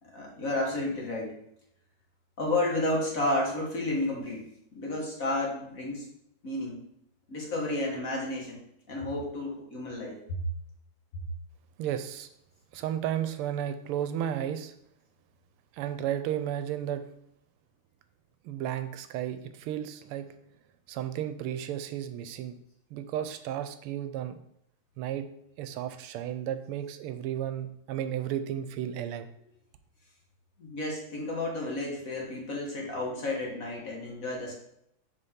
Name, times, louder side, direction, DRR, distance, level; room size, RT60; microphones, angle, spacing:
voice 1, 0.0-1.3 2.4-4.4 4.7-6.0 6.4-6.8 7.3-8.6 8.9-10.4 11.1-11.2 30.6-34.5, left 2 dB, 45° left, -1 dB, 1.6 m, -31 dB
voice 2, 11.8-12.3 12.7-14.7 15.7-17.0 18.4-20.3 20.9-22.6 22.9-24.4 25.0-25.3 25.6-29.3, right 10 dB, 90° right, 10 dB, 1.5 m, -33 dB
6.7 x 5.3 x 3.6 m, 0.76 s
omnidirectional pair, 2.4 m